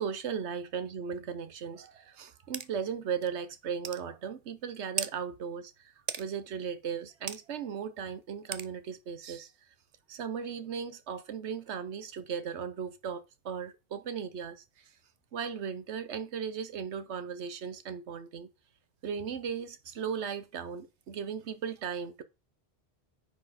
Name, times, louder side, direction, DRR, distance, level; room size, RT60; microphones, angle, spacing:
voice 1, 0.0-9.5 10.1-14.6 15.3-18.5 19.0-22.2, right 7 dB, 85° right, 1.2 m, -37 dB
lite wood, 2.5-2.7 3.2-3.3 3.8-4.0 5.0-5.1 6.1-6.3 7.3-7.4 8.5-8.7, right 8 dB, 50° right, 0.5 m, -34 dB
9.6 x 4.3 x 4.1 m
omnidirectional pair, 1.1 m